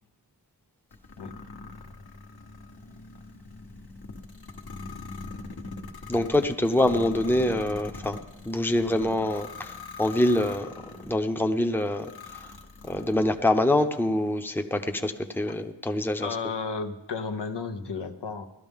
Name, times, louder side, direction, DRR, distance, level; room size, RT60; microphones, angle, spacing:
sound 1, 0.9-11.2 11.8-13.4, left 3 dB, 60° left, 1.2 m, -42 dB
voice 1, 6.1-8.2 8.5-10.7 11.1-12.1 12.8-16.3, left 1 dB, 5° left, 6 dB, 0.7 m, -25 dB
voice 2, 16.2-18.5, left 4 dB, 85° left, 6 dB, 0.9 m, -33 dB
17.0 x 12.5 x 3.6 m, 1.1 s
wide cardioid pair, 70°, 40 cm